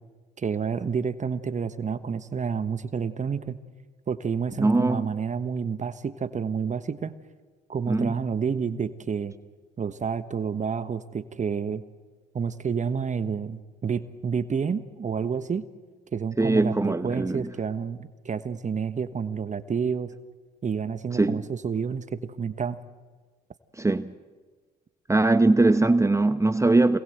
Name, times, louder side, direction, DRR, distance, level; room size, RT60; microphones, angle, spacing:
voice 1, 0.4-3.6 4.1-7.1 7.7-9.3 9.8-11.8 12.3-15.7 16.1-20.1 20.6-22.8, right 6 dB, 40° right, 1.3 m, -29 dB
voice 2, 4.6-5.1 7.9-8.2 16.4-17.5 21.2-21.5 23.8-24.1 25.1-27.0, right 2 dB, 15° right, 0.9 m, -21 dB
27.0 x 20.5 x 8.0 m
supercardioid pair, 60°, 19 cm